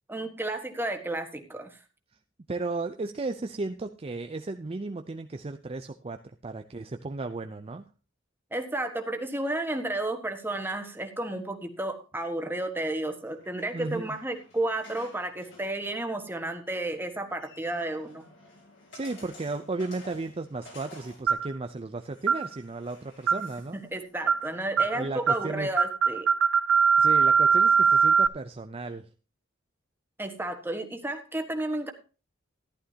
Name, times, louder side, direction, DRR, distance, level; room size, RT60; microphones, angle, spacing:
voice 1, 0.1-1.8 8.5-18.2 23.7-26.3 30.2-31.9, right 1 dB, 10° right, 5 dB, 1.4 m, -32 dB
voice 2, 2.5-6.2 6.4-7.9 13.7-14.2 18.9-23.8 24.8-25.7 27.0-29.1, right 3 dB, 30° right, 7 dB, 0.5 m, -34 dB
sound 1, 13.2-25.4, left 2 dB, 65° left, 5.5 m, -54 dB
sound 2, 21.3-21.5 22.3-22.5 23.3-23.5 24.3-24.5 24.8-25.0 25.3-25.5 25.8-28.3, right 6 dB, 85° right, 0.5 m, -21 dB
14.0 x 11.0 x 2.8 m, 0.33 s
head